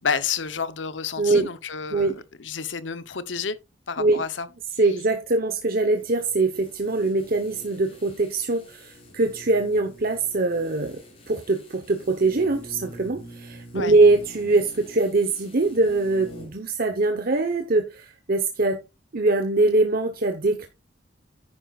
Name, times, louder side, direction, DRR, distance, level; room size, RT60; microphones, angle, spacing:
voice 1, 0.0-3.6 3.9-4.5 13.7-13.9, left 6 dB, 75° left, 0.9 m, -30 dB
voice 2, 1.2-1.5 1.9-2.2 4.0-4.2 4.8-11.0 11.3-18.8 19.1-20.7, right 2 dB, 50° right, 1.1 m, -22 dB
sound 1, 6.0-16.6 16.9-17.0, equal, 30° left, 4.0 m, -46 dB
10.0 x 9.7 x 2.4 m
head